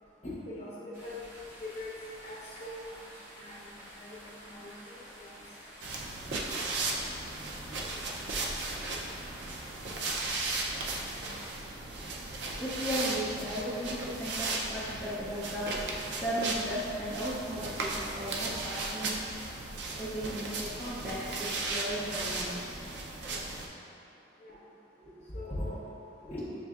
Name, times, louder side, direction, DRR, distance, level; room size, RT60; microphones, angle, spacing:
voice 1, 0.2-1.2 1.6-1.9 2.2-2.8 3.4-5.3 24.4-24.6 25.3-25.8 26.3-26.4, left 1 dB, 35° left, -7 dB, 0.8 m, -41 dB
sound 1, 0.9-11.5, equal, 45° right, 0.9 m, -50 dB
sound 2, 5.8-23.7, right 2 dB, 70° right, 0.4 m, -36 dB
voice 2, 12.6-15.9 16.2-19.3 20.0-22.8 25.0-25.2 26.2-26.6, equal, 10° left, -11 dB, 0.5 m, -36 dB
7.2 x 2.6 x 2.3 m, 2.7 s
head